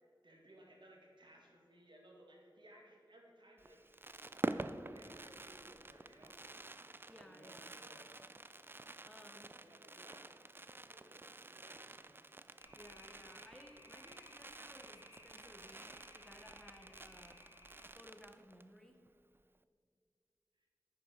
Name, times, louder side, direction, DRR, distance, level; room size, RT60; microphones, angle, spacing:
voice 1, 0.0-4.0 4.3-6.4 7.1-8.0 9.6-10.3 10.8-12.1 20.6-20.7, right 1 dB, 75° right, -1 dB, 1.9 m, -61 dB
Fireworks, 3.6-18.8 19.1-19.2 19.3-19.6, right 2 dB, 25° right, 0.3 m, -48 dB
voice 2, 7.1-7.8 9.0-9.6 12.7-17.5 17.8-19.1, equal, 5° left, 5 dB, 0.8 m, -59 dB
sound 1, 12.6-17.9, left 1 dB, 85° left, 1.7 m, -61 dB
9.8 x 6.4 x 5.0 m, 2.3 s
wide cardioid pair, 65°, 8 cm